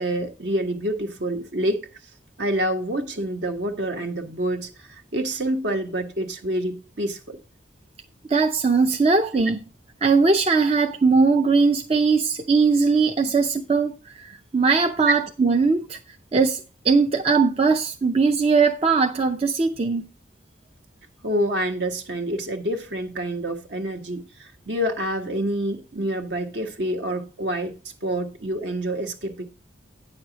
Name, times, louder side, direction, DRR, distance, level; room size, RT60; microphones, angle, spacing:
voice 1, 0.0-1.9 2.4-7.4 15.1-15.2 21.2-29.4, right 1 dB, 65° right, 1.4 m, -27 dB
voice 2, 8.3-9.6 10.0-20.1, right 4 dB, 30° right, 0.5 m, -20 dB
9.3 x 6.5 x 4.0 m
head